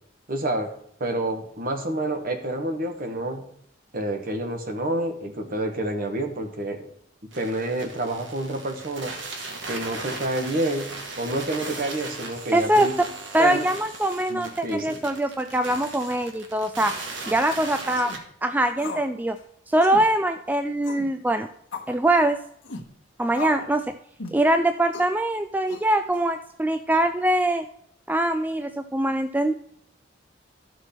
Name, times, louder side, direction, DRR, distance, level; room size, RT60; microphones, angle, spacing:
voice 1, 0.3-0.7 1.0-3.5 3.9-6.9 7.3-9.1 9.7-12.9 13.4-13.6 14.3-15.0, right 1 dB, 50° right, 5 dB, 1.3 m, -28 dB
sound 1, 7.3-18.2, right 3 dB, 75° right, 1.6 m, -37 dB
voice 2, 12.5-12.9 13.3-16.9 17.3-18.1 18.4-19.4 19.7-21.5 21.9-22.4 23.2-23.9 24.3-27.7 28.1-29.5, right 1 dB, 10° right, 8 dB, 0.3 m, -23 dB
sound 2, 17.9-18.2 18.8-19.1 19.4-19.5 19.8-20.1 20.8-21.1 21.7-22.0 22.6-22.9 23.3-23.7 24.2-24.4 24.9-25.1 25.7-26.2, left 3 dB, 80° left, 1.3 m, -36 dB
13.5 x 6.2 x 4.3 m, 0.68 s
head